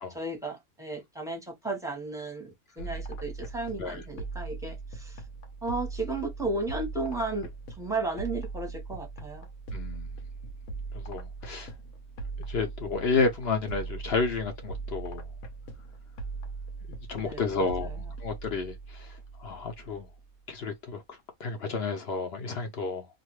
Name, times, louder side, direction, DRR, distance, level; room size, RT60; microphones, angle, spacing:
voice 1, 0.1-2.5 2.8-5.2 5.6-7.5 7.8-9.5 17.2-17.9, right 2 dB, 5° right, 0.9 m, -34 dB
sound 1, 2.8-20.4, right 4 dB, 75° left, 1.1 m, -40 dB
voice 2, 9.7-10.1 10.9-11.7 12.5-15.3 17.1-20.1 20.5-23.1, left 4 dB, 55° left, 0.8 m, -31 dB
2.6 x 2.5 x 3.0 m
omnidirectional pair, 1.5 m